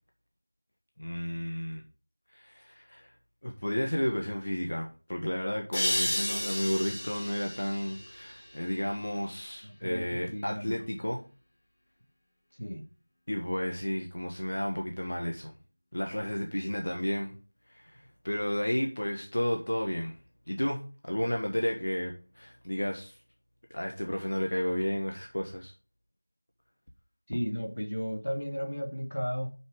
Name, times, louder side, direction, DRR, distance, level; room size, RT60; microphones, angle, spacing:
voice 1, 1.0-1.8 2.3-3.1 3.4-11.2 13.3-15.5 15.9-17.4 17.7-20.2 20.5-23.2 23.7-25.7, equal, 55° left, 1.4 m, -32 dB
sound 1, 5.7-9.1, left 1 dB, 20° left, 1.3 m, -33 dB
voice 2, 9.6-10.9 12.5-12.8 27.3-29.5, equal, 90° left, 2.1 m, -34 dB
5.9 x 5.4 x 4.9 m
figure-of-eight pair, 180°, 0 cm